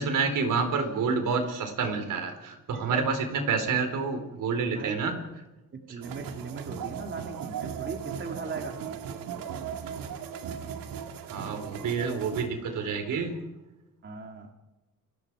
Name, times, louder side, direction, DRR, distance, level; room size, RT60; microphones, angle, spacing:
voice 1, 0.0-5.2 11.3-13.4, right 5 dB, 70° right, 7 dB, 4.4 m, -28 dB
voice 2, 4.6-5.1 5.7-8.8 14.0-14.5, right 4 dB, 35° right, 3 dB, 2.5 m, -38 dB
sound 1, 6.0-12.5, right 7 dB, 85° right, 2.4 m, -37 dB
28.5 x 20.5 x 4.9 m, 1.0 s
cardioid pair, 130°, 33 cm